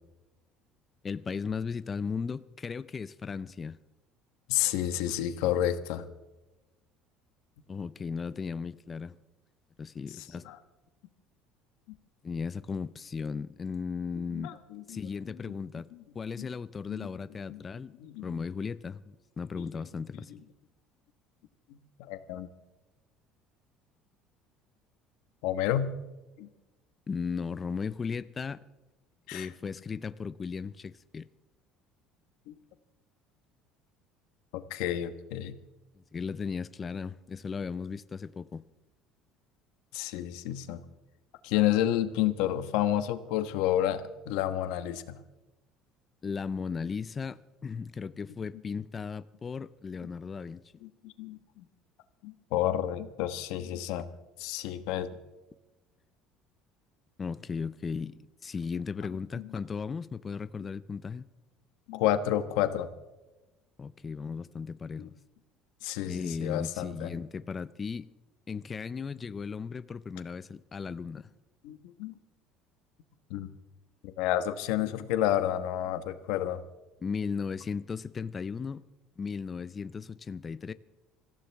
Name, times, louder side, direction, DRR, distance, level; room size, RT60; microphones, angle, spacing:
voice 1, 1.0-3.8 7.7-9.2 9.8-10.5 12.2-14.5 14.9-17.9 18.2-20.3 27.1-28.6 29.3-31.3 36.1-38.6 46.2-50.6 57.2-61.3 63.8-65.1 66.1-68.1 68.5-71.3 77.0-78.8 79.2-80.7, left 5 dB, 25° left, 0.5 m, -36 dB
voice 2, 4.5-6.0 10.5-10.6 14.3-15.0 16.4-16.5 16.9-17.1 17.5-17.6 18.0-18.4 22.0-22.5 25.4-25.9 26.4-26.5 29.3-29.5 32.5-32.6 34.5-35.5 39.9-40.8 41.4-45.2 51.0-51.6 52.2-54.1 54.4-55.2 59.3-59.4 61.9-62.9 65.0-65.1 65.8-67.1 71.6-72.1 73.3-73.5 74.0-76.6, left 12 dB, 80° left, 1.2 m, -30 dB
25.5 x 15.0 x 3.5 m
cardioid pair, 145°, 0 cm